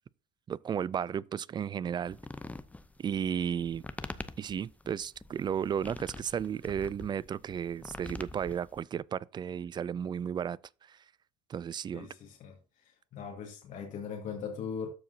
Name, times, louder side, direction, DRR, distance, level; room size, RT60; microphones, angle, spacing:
voice 1, 0.5-2.2 3.0-3.8 4.4-10.6 10.9-11.0 11.5-12.1, right 8 dB, 25° right, 0.3 m, -34 dB
sound 1, 2.1-8.8, left 2 dB, 10° left, 0.6 m, -45 dB
voice 2, 11.9-14.9, left 6 dB, 50° left, 1.8 m, -40 dB
13.5 x 4.7 x 2.8 m
supercardioid pair, 85°, 17 cm